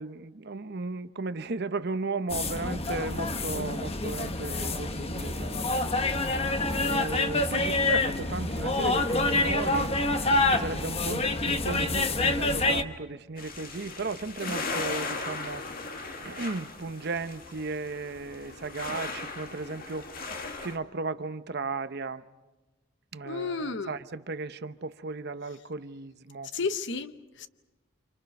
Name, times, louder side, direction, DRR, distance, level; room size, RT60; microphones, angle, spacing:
voice 1, 0.0-5.8 6.6-9.9 10.5-15.7 16.2-20.1 20.6-22.2 23.1-26.5, right 3 dB, 55° right, 0.9 m, -35 dB
sound 1, 2.3-12.8, left 2 dB, 30° left, 1.1 m, -27 dB
sound 2, 13.4-20.8, left 3 dB, 50° left, 2.1 m, -37 dB
voice 2, 23.2-24.0 26.5-27.5, left 4 dB, 65° left, 0.9 m, -32 dB
29.5 x 27.5 x 5.4 m
head